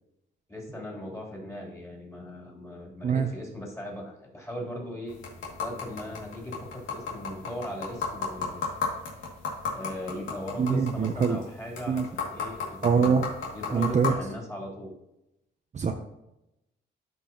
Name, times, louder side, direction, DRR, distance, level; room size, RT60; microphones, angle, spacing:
voice 1, 0.5-5.2 5.6-8.7 9.7-13.1 13.5-14.9, equal, 15° left, -3 dB, 3.2 m, -39 dB
sound 1, 5.1-14.1, left 5 dB, 80° left, 2.3 m, -35 dB
voice 2, 10.6-11.4 11.9-12.1 12.8-13.3 13.7-14.1 15.7-15.9, right 6 dB, 35° right, 5 dB, 0.7 m, -24 dB
11.5 x 5.4 x 2.9 m, 0.89 s
cardioid pair, 90°, 20 cm